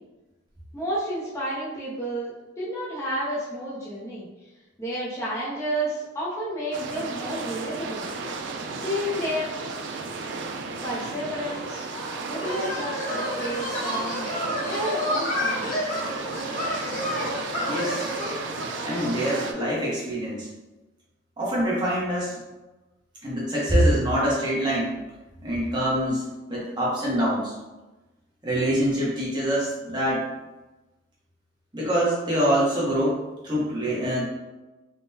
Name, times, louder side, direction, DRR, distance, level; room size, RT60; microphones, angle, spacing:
voice 1, 0.7-4.3 4.8-8.0 8.7-9.5 10.8-11.9 12.2-14.3 14.7-15.7, equal, 15° left, -8 dB, 0.5 m, -31 dB
sound 1, 6.7-19.5, right 4 dB, 65° right, 0.3 m, -34 dB
sound 2, 11.4-19.5, left 1 dB, 40° left, 0.9 m, -30 dB
voice 2, 17.7-18.1 18.8-20.5 21.4-22.4 23.2-25.0 25.4-27.6 28.4-30.2 31.7-34.3, equal, 20° right, -5 dB, 0.7 m, -25 dB
3.6 x 2.1 x 2.7 m, 1.1 s
head